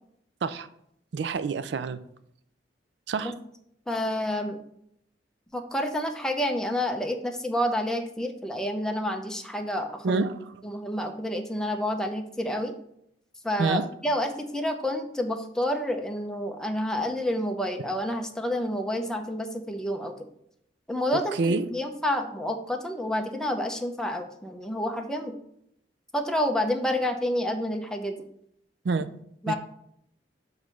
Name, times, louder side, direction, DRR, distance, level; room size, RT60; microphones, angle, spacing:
voice 1, 1.1-2.0 3.1-3.3 10.0-10.4 13.6-13.9 21.4-21.7 28.8-29.1 29.5-29.6, right 4 dB, 70° right, 13 dB, 0.4 m, -27 dB
voice 2, 3.9-4.6 5.5-10.2 10.6-12.7 13.4-20.1 20.9-25.4 26.1-28.3 29.4-29.5, left 1 dB, 5° left, 4 dB, 0.6 m, -29 dB
7.1 x 3.2 x 6.2 m, 0.73 s
head